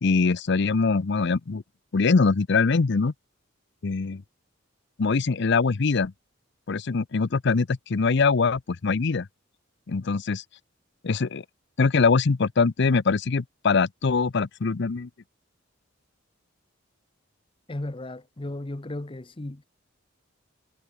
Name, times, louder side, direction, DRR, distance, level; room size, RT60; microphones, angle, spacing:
voice 1, 0.0-1.6 1.9-3.1 3.8-4.2 5.0-6.1 6.7-9.3 9.9-10.4 11.0-11.4 11.8-15.1, left 4 dB, 60° left, 0.6 m, -23 dB
voice 2, 17.7-19.6, left 1 dB, 25° left, 0.8 m, -35 dB
head